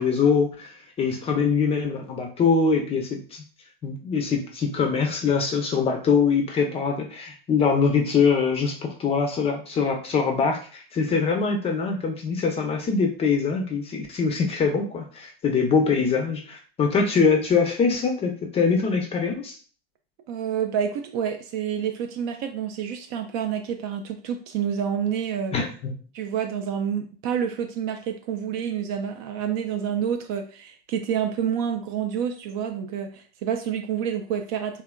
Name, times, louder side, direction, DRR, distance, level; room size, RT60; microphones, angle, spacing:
voice 1, 0.0-3.4 3.8-19.5 25.5-25.9, left 5 dB, 20° left, 3 dB, 0.5 m, -23 dB
voice 2, 20.3-25.6 26.1-34.8, right 8 dB, 40° right, 6 dB, 0.4 m, -28 dB
2.8 x 2.4 x 2.2 m, 0.40 s
hypercardioid pair, 95°, 30 cm